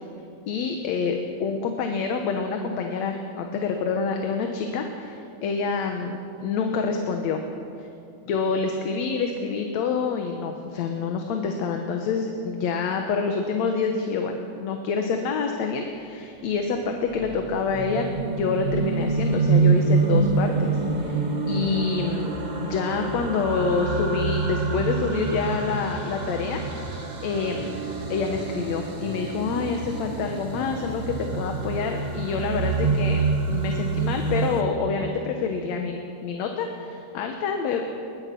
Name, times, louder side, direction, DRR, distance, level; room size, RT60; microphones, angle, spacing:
voice 1, 0.5-7.4 7.8-7.9 8.3-22.3 22.6-26.6 26.9-27.7 28.1-37.9, left 5 dB, 70° left, 4 dB, 2.4 m, -27 dB
sound 1, 16.6-34.6, right 4 dB, 55° right, 0.4 m, -26 dB
22.0 x 20.5 x 6.0 m, 2.6 s
omnidirectional pair, 3.3 m